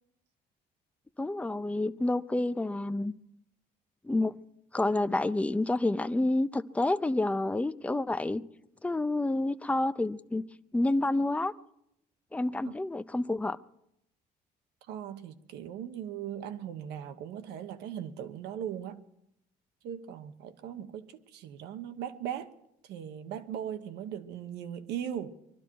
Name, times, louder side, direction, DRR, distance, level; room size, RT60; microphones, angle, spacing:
voice 1, 1.2-3.1 4.0-4.3 4.7-8.4 8.8-10.4 10.7-11.5 12.3-13.6, left 2 dB, 10° left, 0.5 m, -29 dB
voice 2, 14.9-19.0 19.8-22.5 22.8-25.3, right 9 dB, 85° right, 1.1 m, -39 dB
22.5 x 12.0 x 4.6 m
cardioid pair, 110°, 17 cm